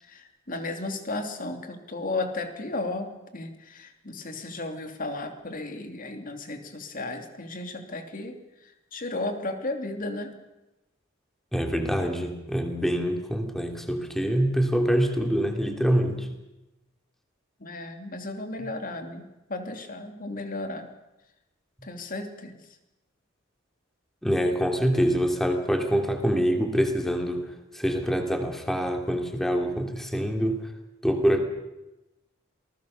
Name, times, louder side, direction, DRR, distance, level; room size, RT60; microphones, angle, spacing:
voice 1, 0.0-10.3 17.6-20.9 21.8-22.6, left 2 dB, 45° left, 6 dB, 2.9 m, -34 dB
voice 2, 11.5-16.3 24.2-30.6 31.0-31.4, equal, ahead, 4 dB, 2.8 m, -25 dB
27.5 x 20.0 x 6.7 m, 0.98 s
head